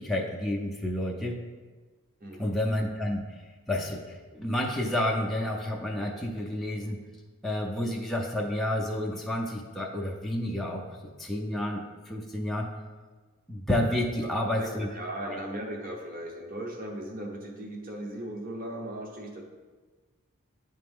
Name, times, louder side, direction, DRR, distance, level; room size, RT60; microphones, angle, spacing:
voice 1, 0.0-1.4 2.4-3.2 3.7-7.0 7.4-10.9 11.2-12.7 13.5-14.9 15.2-15.4, left 1 dB, ahead, -2 dB, 0.4 m, -30 dB
voice 2, 2.2-2.6 14.2-19.4, right 1 dB, 40° right, 0 dB, 0.9 m, -38 dB
9.6 x 3.3 x 3.6 m, 1.4 s
head